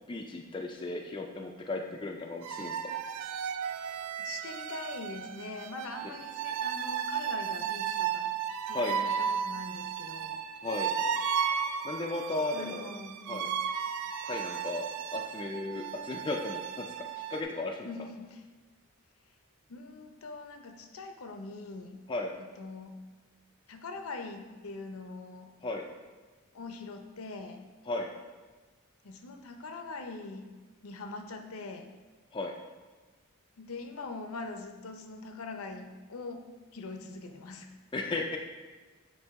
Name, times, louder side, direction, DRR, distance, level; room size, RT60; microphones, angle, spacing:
voice 1, 0.1-2.8 8.7-9.0 10.6-10.9 11.8-12.9 13.3-13.5 14.2-14.8 15.1-17.9 22.1-22.3 25.6-25.8 27.9-28.1 32.3-32.5 37.9-38.4, left 2 dB, 20° left, 2 dB, 0.3 m, -35 dB
sound 1, 2.4-17.4, right 7 dB, 85° right, 0.4 m, -34 dB
voice 2, 4.2-8.3 8.7-10.4 12.5-13.5 17.8-18.4 19.7-22.0 22.4-23.0 23.7-25.5 26.5-27.6 29.0-30.5 30.8-31.9 33.6-36.4 36.7-37.7 38.1-38.4, left 3 dB, 70° left, 6 dB, 0.6 m, -43 dB
7.9 x 2.7 x 4.6 m, 1.4 s
head